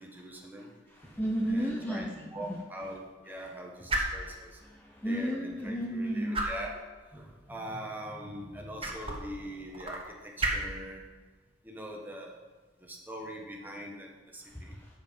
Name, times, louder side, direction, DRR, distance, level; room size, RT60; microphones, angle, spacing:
voice 1, 0.0-0.7 1.5-4.6 5.0-11.0 11.6-12.4 12.8-14.7, equal, 10° right, -1 dB, 1.5 m, -42 dB
voice 2, 0.9-2.6 4.2-4.4 4.6-6.4 14.5-15.0, equal, 10° left, -2 dB, 0.8 m, -33 dB
sound 1, 0.9-14.4, right 2 dB, 30° right, 1.4 m, -40 dB
13.0 x 5.7 x 5.4 m, 1.3 s
head